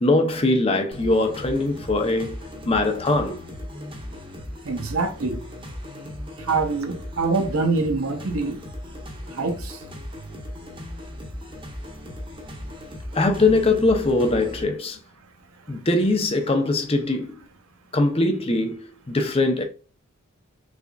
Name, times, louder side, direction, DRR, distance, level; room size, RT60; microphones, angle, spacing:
voice 1, 0.0-3.4 13.1-15.0 15.7-17.3 17.9-19.6, left 2 dB, 25° left, 0.5 m, -22 dB
sound 1, 0.9-14.6, left 1 dB, 25° right, 0.7 m, -37 dB
voice 2, 4.6-5.4 6.4-8.6 9.3-9.8, right 3 dB, 75° right, 0.7 m, -25 dB
3.6 x 3.4 x 2.3 m
head